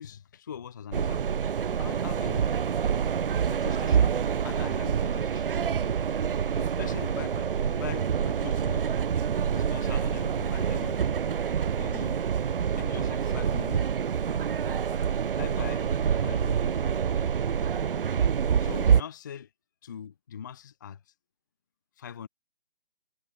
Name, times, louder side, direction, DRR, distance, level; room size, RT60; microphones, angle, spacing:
voice 1, 0.0-1.3 1.7-2.5 3.5-4.2 4.4-5.5 6.6-8.9 9.5-11.0 11.8-12.2 12.8-13.9 15.4-16.7 18.6-19.5 19.8-21.0 22.0-22.3, left 8 dB, 20° left, 0.5 m, -41 dB
sound 1, 0.9-19.0, right 7 dB, 65° right, 0.5 m, -27 dB
figure-of-eight pair, 140°, 30 cm